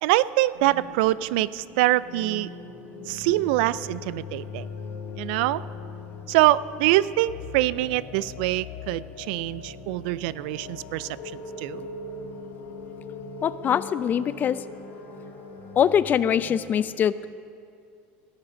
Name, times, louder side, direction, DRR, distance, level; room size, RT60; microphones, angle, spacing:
voice 1, 0.0-2.5 3.1-4.7 5.2-5.6 6.3-11.8, right 16 dB, 75° right, 18 dB, 0.4 m, -24 dB
sound 1, 0.5-16.6, left 4 dB, 85° left, 2.6 m, -40 dB
voice 2, 13.4-14.6 15.8-17.3, left 8 dB, 35° left, 15 dB, 0.4 m, -23 dB
17.0 x 7.3 x 6.3 m, 2.4 s
supercardioid pair, 120°, 5 cm